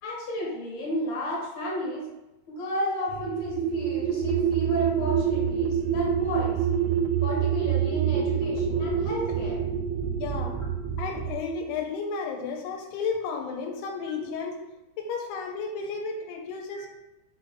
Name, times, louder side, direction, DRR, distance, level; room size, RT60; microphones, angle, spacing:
voice 1, 0.0-2.1 2.5-6.6 7.2-9.6 14.2-14.3 16.7-16.9, equal, 55° left, -5 dB, 2.4 m, -32 dB
sound 1, 3.1-11.4, right 8 dB, 85° right, 2.4 m, -26 dB
voice 2, 10.2-10.6 11.0-14.6 15.0-16.9, left 5 dB, 90° left, 2 dB, 2.8 m, -32 dB
7.3 x 3.7 x 3.8 m, 0.96 s
omnidirectional pair, 4.6 m